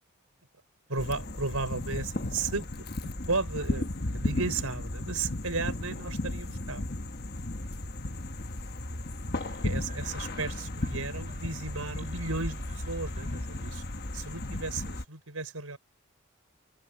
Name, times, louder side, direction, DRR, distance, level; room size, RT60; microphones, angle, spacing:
voice 1, 0.9-2.7 3.0-6.8 9.4-13.8 14.1-15.8, right 3 dB, 90° right, 5.2 m, -34 dB
sound 1, 1.0-15.0, left 1 dB, 45° left, 1.3 m, -35 dB
sound 2, 9.4-14.1, right 1 dB, 35° right, 6.9 m, -47 dB
head